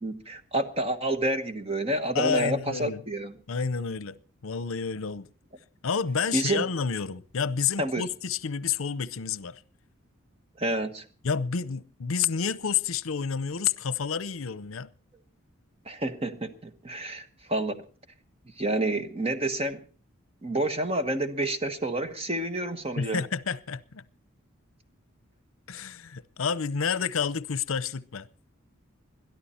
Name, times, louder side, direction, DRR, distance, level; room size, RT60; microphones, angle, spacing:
voice 1, 0.0-3.4 6.3-6.6 7.8-8.0 10.6-11.0 15.9-17.8 18.6-19.8 20.4-23.2, right 1 dB, 30° right, 1.2 m, -29 dB
voice 2, 2.1-3.0 3.5-4.2 4.4-5.3 5.8-9.6 11.2-14.9 23.0-24.0 25.7-28.3, left 6 dB, 80° left, 0.7 m, -29 dB
21.5 x 13.0 x 4.3 m
head